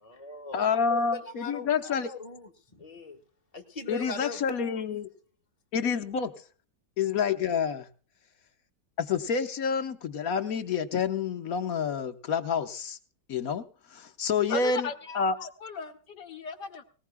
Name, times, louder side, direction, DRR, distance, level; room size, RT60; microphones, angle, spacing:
voice 1, 0.0-3.2 3.5-4.8, left 4 dB, 25° left, 3 dB, 1.3 m, -41 dB
voice 2, 0.5-2.1 3.9-5.1 5.7-6.3 7.0-7.9 9.0-13.0 13.3-13.6 13.9-14.9 15.1-15.4, left 6 dB, 55° left, 7 dB, 1.4 m, -28 dB
voice 3, 14.5-16.8, left 5 dB, 70° left, 3 dB, 1.7 m, -36 dB
19.5 x 19.0 x 2.2 m, 0.40 s
omnidirectional pair, 1.9 m